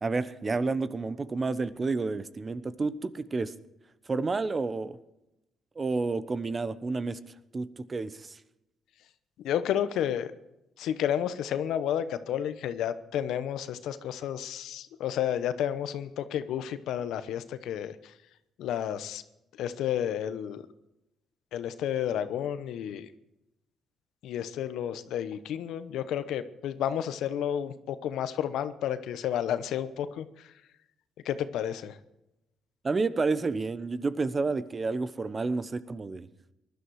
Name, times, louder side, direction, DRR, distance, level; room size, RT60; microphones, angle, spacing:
voice 1, 0.0-3.5 4.1-5.0 5.8-7.2 7.5-8.4 32.8-36.3, right 3 dB, 30° right, 15 dB, 0.9 m, -30 dB
voice 2, 9.4-10.3 10.8-17.9 18.6-19.2 19.6-20.6 21.5-23.1 24.2-30.2 31.2-32.0, left 10 dB, 80° left, 12 dB, 0.9 m, -31 dB
19.5 x 12.0 x 4.8 m, 0.91 s
cardioid pair, 90°, 0 cm